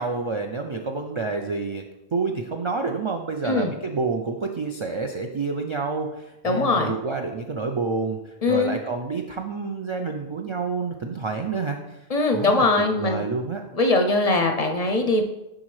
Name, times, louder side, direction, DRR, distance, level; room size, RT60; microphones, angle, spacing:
voice 1, 0.0-12.0 12.3-13.6, right 4 dB, 50° right, 3 dB, 0.3 m, -29 dB
voice 2, 6.4-6.9 8.4-8.7 12.1-13.2 13.7-15.2, left 2 dB, 45° left, 4 dB, 0.5 m, -21 dB
10.0 x 3.7 x 3.2 m, 0.97 s
omnidirectional pair, 1.0 m